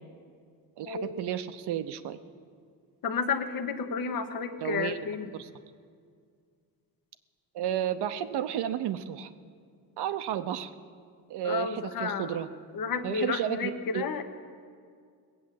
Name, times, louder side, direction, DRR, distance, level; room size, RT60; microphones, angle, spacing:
voice 1, 0.8-2.2 4.6-5.0 5.3-5.5 7.5-9.3 10.0-10.7 11.3-12.5 13.0-14.1, right 10 dB, 90° right, 11 dB, 0.7 m, -32 dB
voice 2, 3.0-5.3 11.4-12.4 12.7-14.2, left 5 dB, 60° left, 8 dB, 1.1 m, -31 dB
18.5 x 8.3 x 7.5 m, 2.1 s
cardioid pair, 80°, 39 cm